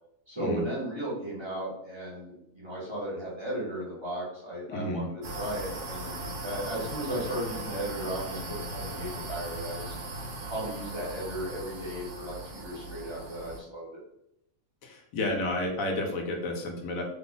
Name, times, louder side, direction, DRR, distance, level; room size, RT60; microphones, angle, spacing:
voice 1, 0.3-10.0 10.5-13.9, right 1 dB, 25° right, -8 dB, 0.9 m, -35 dB
voice 2, 4.7-5.1 14.8-17.0, left 1 dB, 80° left, 2 dB, 1.1 m, -31 dB
sound 1, 5.2-13.6, right 1 dB, 65° right, 1.0 m, -38 dB
2.9 x 2.3 x 3.8 m, 0.82 s
omnidirectional pair, 1.4 m